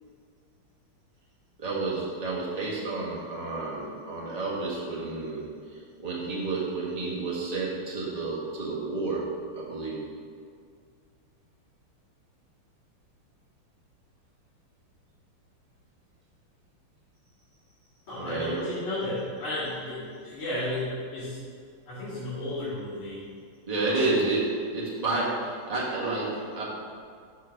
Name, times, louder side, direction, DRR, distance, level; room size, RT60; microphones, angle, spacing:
voice 1, 1.6-10.1 18.2-18.7 23.7-26.6, right 3 dB, 25° right, -6 dB, 1.1 m, -30 dB
voice 2, 18.1-21.4 21.9-23.2 23.8-24.2, left 1 dB, 75° left, -15 dB, 3.0 m, -33 dB
6.4 x 4.5 x 5.8 m, 2.1 s
omnidirectional pair, 2.4 m